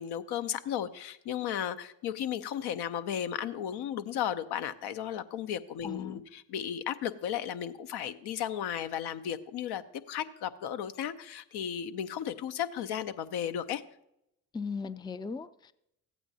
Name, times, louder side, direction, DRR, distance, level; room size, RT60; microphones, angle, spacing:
voice 1, 0.0-9.8 10.1-13.8, left 9 dB, 65° left, 0.8 m, -34 dB
voice 2, 5.8-6.2 14.5-15.7, left 5 dB, 10° left, 0.5 m, -37 dB
14.5 x 8.6 x 2.7 m
hypercardioid pair, 50°, 42 cm